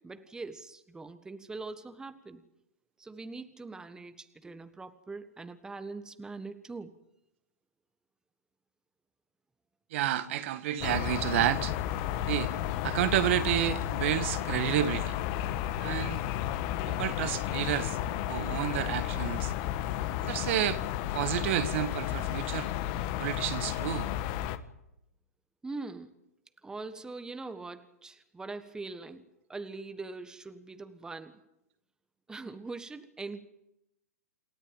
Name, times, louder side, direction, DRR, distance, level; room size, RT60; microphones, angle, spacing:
voice 1, 0.0-2.4 3.0-6.9 25.6-26.1 26.6-29.2 29.5-31.4 32.3-33.4, right 3 dB, 10° right, 1.4 m, -42 dB
voice 2, 9.9-11.7 12.3-12.6 12.8-15.2 15.8-16.2 16.9-18.0 18.3-19.5 20.3-20.8 21.1-22.7 23.2-24.1, right 12 dB, 50° right, 1.8 m, -30 dB
sound 1, 10.8-24.6, left 12 dB, 40° left, 1.5 m, -32 dB
28.0 x 13.5 x 9.0 m
hypercardioid pair, 115°, 8 cm